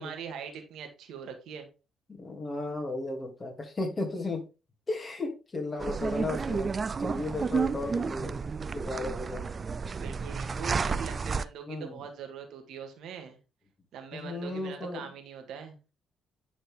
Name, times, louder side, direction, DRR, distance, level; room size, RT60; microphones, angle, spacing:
voice 1, 0.0-1.7 10.0-13.4 13.9-15.8, right 7 dB, 80° right, 2.0 m, -42 dB
voice 2, 2.2-4.4 4.9-6.7 7.0-8.4 8.7-9.4 11.7-12.0 14.1-15.1, left 2 dB, 30° left, 2.7 m, -34 dB
sound 1, 5.8-11.4, right 5 dB, 35° right, 0.4 m, -31 dB
10.0 x 4.3 x 3.6 m
cardioid pair, 90°, 0 cm